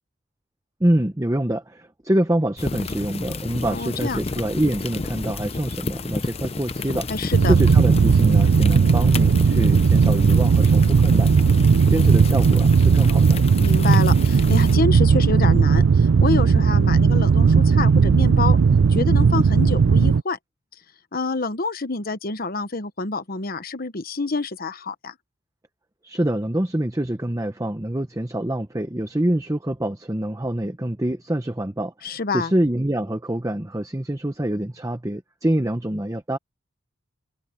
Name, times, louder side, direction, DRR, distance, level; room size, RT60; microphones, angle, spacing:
voice 1, 0.8-7.1 7.4-11.3 11.9-13.4 26.0-36.4, right 1 dB, 15° right, 0.9 m, -25 dB
sound 1, 2.6-14.8, left 3 dB, 30° left, 0.7 m, -32 dB
voice 2, 3.6-4.2 7.1-7.5 13.6-18.6 18.9-20.4 21.1-25.1 32.0-32.5, left 3 dB, 45° left, 1.1 m, -27 dB
sound 2, 7.3-20.2, right 5 dB, 75° right, 0.4 m, -16 dB
head